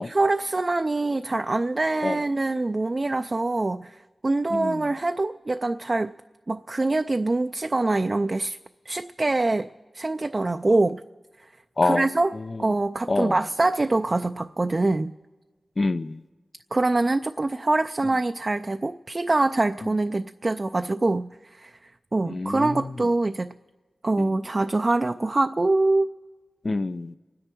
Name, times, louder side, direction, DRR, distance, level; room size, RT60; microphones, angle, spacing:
voice 1, 0.0-4.0 4.2-6.1 6.5-8.6 8.9-9.7 9.9-11.0 11.8-12.3 12.6-15.1 16.7-23.5 24.0-26.1, right 2 dB, 45° right, 8 dB, 0.4 m, -24 dB
voice 2, 4.5-4.8 11.8-12.1 12.3-12.7 13.1-13.4 15.8-16.2 22.3-22.9 24.2-24.4 26.6-27.2, left 3 dB, 55° left, 10 dB, 0.4 m, -26 dB
29.0 x 10.0 x 4.5 m, 1.3 s
cardioid pair, 55°, 0 cm